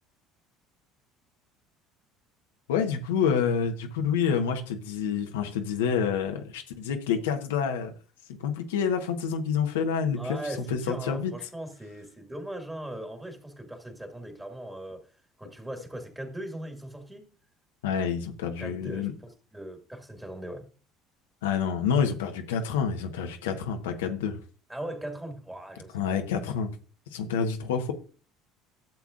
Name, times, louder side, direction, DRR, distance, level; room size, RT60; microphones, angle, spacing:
voice 1, 2.7-7.9 8.4-10.2 10.7-11.3 17.8-19.1 21.4-24.4 25.9-26.7 27.1-27.9, left 7 dB, 85° left, 1.0 m, -28 dB
voice 2, 10.2-15.1 15.4-17.3 18.6-20.7 24.7-26.2, right 1 dB, 10° right, 2.0 m, -39 dB
12.0 x 7.1 x 2.5 m
hypercardioid pair, 75°, 0 cm